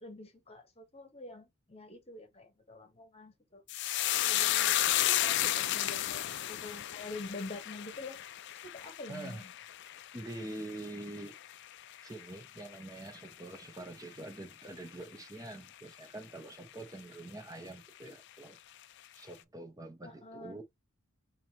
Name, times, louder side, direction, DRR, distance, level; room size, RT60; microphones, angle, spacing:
voice 1, 0.0-3.6 4.3-8.2 8.6-9.5 20.0-20.6, left 2 dB, 30° left, 1.1 m, -46 dB
sound 1, 3.7-12.3 12.6-13.3 13.5-13.8, left 13 dB, 60° left, 0.4 m, -33 dB
voice 2, 9.1-9.5 10.1-11.4 12.0-18.6 19.2-20.6, right 2 dB, 15° right, 0.8 m, -45 dB
4.8 x 2.8 x 2.8 m
head